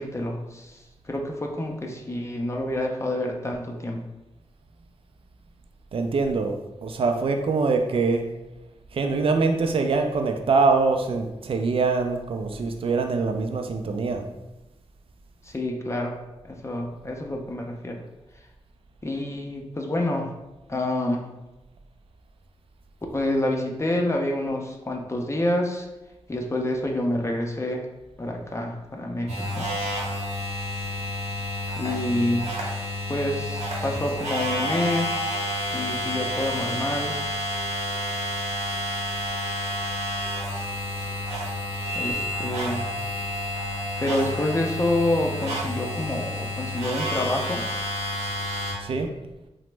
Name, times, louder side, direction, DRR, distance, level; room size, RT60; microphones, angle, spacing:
voice 1, 0.0-4.0 15.4-18.0 19.0-20.3 20.7-21.3 23.1-25.9 26.3-27.9 28.2-29.7 31.8-32.5 33.1-37.1 41.9-42.9 44.0-47.6, left 1 dB, 25° left, 1 dB, 0.5 m, -28 dB
voice 2, 5.9-6.5 6.8-8.2 8.9-14.2 48.8-49.1, right 4 dB, 55° right, 5 dB, 0.4 m, -23 dB
sound 1, 29.3-48.7, left 1 dB, 70° right, 0.8 m, -30 dB
2.9 x 2.0 x 3.2 m, 1.0 s
cardioid pair, 45°, 11 cm